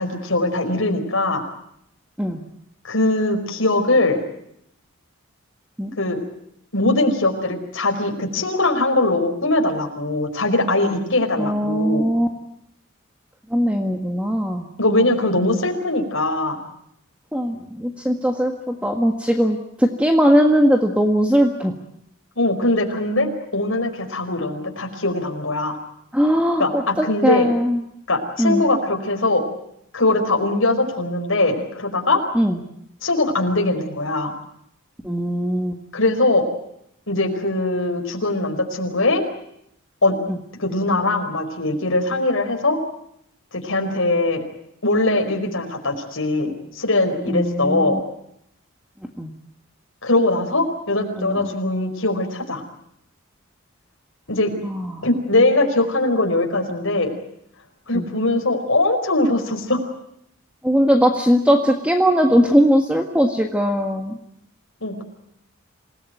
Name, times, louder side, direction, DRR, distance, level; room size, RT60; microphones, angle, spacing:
voice 1, 0.0-1.4 2.8-4.3 6.0-6.2 6.7-12.1 14.8-16.6 22.4-25.8 26.6-27.5 28.1-29.4 29.9-32.2 33.0-34.3 35.9-36.5 37.1-39.2 40.0-40.1 40.6-42.8 43.5-44.4 44.8-48.0 50.0-52.6 54.3-54.5 55.0-57.1 57.9-59.9 64.8-65.0, left 2 dB, 65° left, 3 dB, 5.0 m, -21 dB
voice 2, 11.4-12.3 13.5-14.7 17.3-21.7 26.1-27.8 28.4-28.7 32.3-32.6 35.0-35.8 40.3-40.4 47.3-48.0 49.2-49.3 51.2-51.5 54.6-55.1 57.9-58.1 60.6-64.2, equal, 5° right, 4 dB, 1.6 m, -19 dB
27.5 x 18.5 x 9.2 m, 0.75 s
head